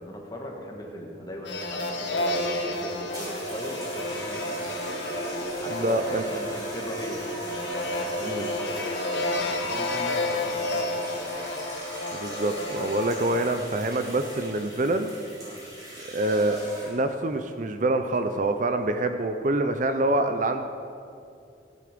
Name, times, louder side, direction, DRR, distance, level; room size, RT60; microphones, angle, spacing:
voice 1, 0.0-4.9 5.2-11.0 15.4-15.6, left 1 dB, 20° left, 0 dB, 1.6 m, -39 dB
sound 1, 1.4-14.7, left 1 dB, 70° left, 1.4 m, -31 dB
sound 2, 3.1-17.1 18.0-18.3, equal, 20° right, 3.8 m, -39 dB
voice 2, 5.7-6.2 8.3-8.5 12.1-15.1 16.1-20.6, right 2 dB, 40° right, 8 dB, 0.5 m, -26 dB
15.5 x 9.5 x 5.1 m, 2.5 s
head